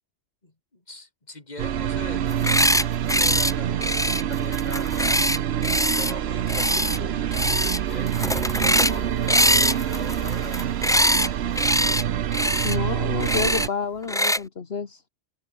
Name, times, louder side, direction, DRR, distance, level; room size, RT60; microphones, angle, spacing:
voice 1, 0.4-2.3 3.0-4.9 5.6-8.1 8.6-10.6 10.9-11.4, left 2 dB, 40° left, 3.1 m, -41 dB
sound 1, 1.6-13.7, right 10 dB, 75° right, 1.0 m, -26 dB
sound 2, 2.3-2.8 3.1-3.5 3.8-6.1 6.5-7.0 7.3-7.8 8.1-9.0 9.3-11.3 11.5-12.0 12.3-12.8 13.2-13.7 14.1-14.4, equal, 5° left, 1.1 m, -22 dB
Brass instrument, 7.8-12.6, right 1 dB, 40° right, 4.4 m, -47 dB
voice 2, 12.6-15.1, left 5 dB, 65° left, 1.7 m, -29 dB
open air
omnidirectional pair, 1.1 m